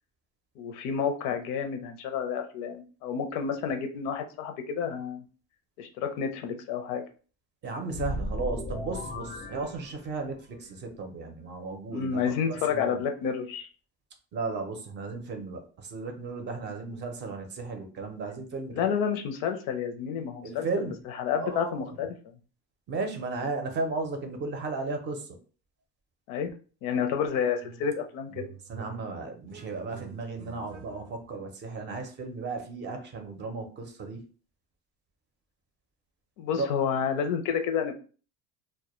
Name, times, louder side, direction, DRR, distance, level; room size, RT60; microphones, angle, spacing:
voice 1, 0.6-5.2 5.8-7.0 11.9-13.7 18.7-20.7 21.1-22.4 26.3-26.5 26.8-28.5 36.4-37.9, left 7 dB, 85° left, 6 dB, 0.5 m, -30 dB
voice 2, 7.6-12.2 12.5-13.0 14.3-18.9 20.4-21.0 21.3-22.0 22.9-25.4 28.7-34.2 36.5-36.7, right 3 dB, 35° right, 5 dB, 0.5 m, -35 dB
sound 1, 7.9-10.4, left 1 dB, 25° left, 0.4 m, -36 dB
sound 2, 27.6-28.0 28.3-31.4, right 9 dB, 85° right, 0.5 m, -48 dB
2.1 x 2.1 x 2.9 m, 0.38 s
cardioid pair, 140°, 31 cm